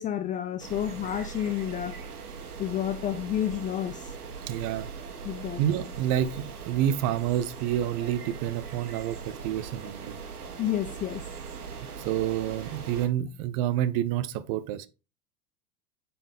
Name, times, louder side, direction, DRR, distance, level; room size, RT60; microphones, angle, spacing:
voice 1, 0.0-1.9 2.6-4.1 5.2-5.6 10.6-11.2, left 11 dB, 20° left, 0.4 m, -30 dB
sound 1, 0.6-13.1, right 5 dB, 80° right, 1.5 m, -40 dB
voice 2, 4.5-4.9 5.6-10.2 12.0-14.9, right 11 dB, 45° right, 0.7 m, -28 dB
8.8 x 4.3 x 3.4 m
hypercardioid pair, 85°, 44 cm